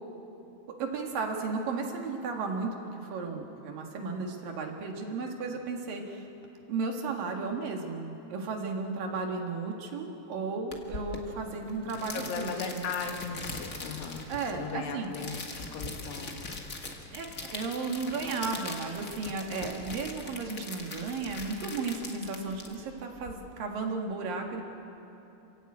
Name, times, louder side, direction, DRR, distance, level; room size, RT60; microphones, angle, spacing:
voice 1, 0.8-6.2 6.7-12.9 14.3-15.1 17.1-24.6, right 4 dB, 65° right, 2 dB, 3.3 m, -34 dB
sound 1, 10.7-23.3, left 3 dB, 45° left, 1.1 m, -41 dB
voice 2, 12.1-15.3 15.7-16.5, left 5 dB, 90° left, 4 dB, 3.7 m, -37 dB
27.5 x 16.0 x 8.7 m, 2.9 s
omnidirectional pair, 4.6 m